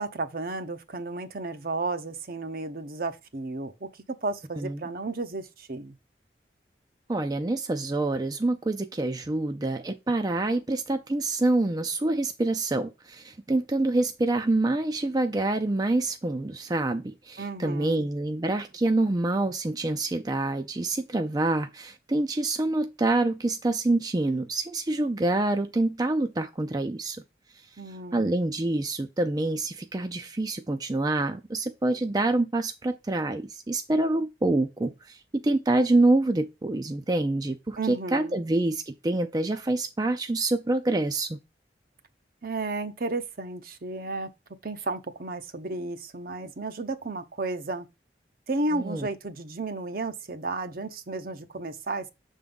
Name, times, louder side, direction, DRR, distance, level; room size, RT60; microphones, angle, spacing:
voice 1, 0.0-5.9 17.4-18.1 27.8-28.3 37.8-38.4 42.4-44.3 44.6-47.9 48.5-52.1, right 3 dB, 55° right, 0.7 m, -33 dB
voice 2, 4.6-4.9 7.1-27.2 27.9-41.4 48.7-49.1, right 2 dB, 20° right, 0.4 m, -26 dB
6.7 x 3.7 x 5.2 m
head